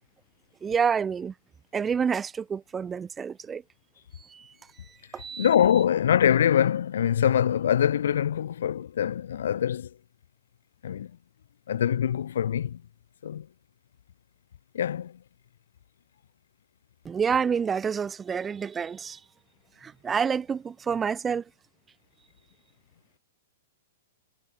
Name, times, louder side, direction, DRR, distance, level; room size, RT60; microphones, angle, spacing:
voice 1, 0.6-1.3 1.7-3.6 4.2-4.5 4.8-5.5 17.0-19.2 19.8-21.4, right 6 dB, 15° right, 0.7 m, -28 dB
voice 2, 5.4-9.9 10.8-11.1 11.7-12.8 13.2-13.4 14.7-15.1, left 9 dB, 60° left, 0.5 m, -24 dB
figure-of-eight pair, 105°, 0 cm